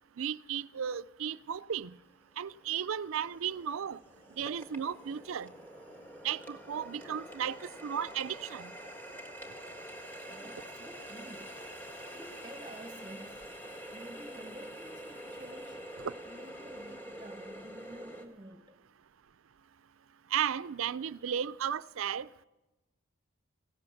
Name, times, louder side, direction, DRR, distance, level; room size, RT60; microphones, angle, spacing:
voice 1, 0.2-1.9 2.4-4.0 4.4-5.5 6.2-7.6 7.8-8.7 20.3-22.4, right 8 dB, 75° right, 0.4 m, -34 dB
Water tap faucet, 2.4-18.3, equal, 10° left, 1.5 m, -46 dB
voice 2, 10.3-11.6 12.1-13.5 13.9-15.8 16.3-18.8, right 1 dB, 20° right, 1.0 m, -50 dB
17.0 x 14.0 x 5.7 m
head